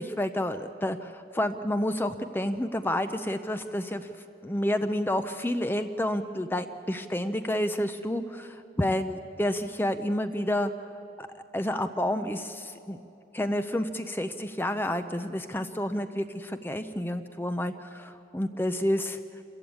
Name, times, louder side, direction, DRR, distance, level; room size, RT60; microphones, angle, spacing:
voice 1, 0.0-4.1 4.4-10.7 11.2-11.3 11.5-13.0 13.3-19.2, left 1 dB, 10° left, 9 dB, 0.6 m, -29 dB
26.5 x 15.0 x 8.6 m, 2.7 s
head